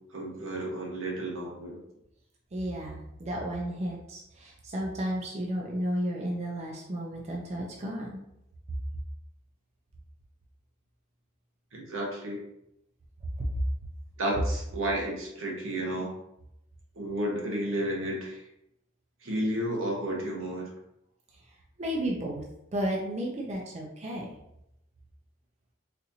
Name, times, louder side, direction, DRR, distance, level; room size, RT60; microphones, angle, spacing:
voice 1, 0.1-1.8 11.7-12.4 14.2-16.1 17.0-18.5 19.2-20.7, right 1 dB, 85° right, -1 dB, 1.0 m, -32 dB
voice 2, 2.5-8.2 13.4-13.5 21.8-22.4 22.7-24.3, equal, 35° right, -1 dB, 0.5 m, -33 dB
4.1 x 2.6 x 2.7 m, 0.82 s
head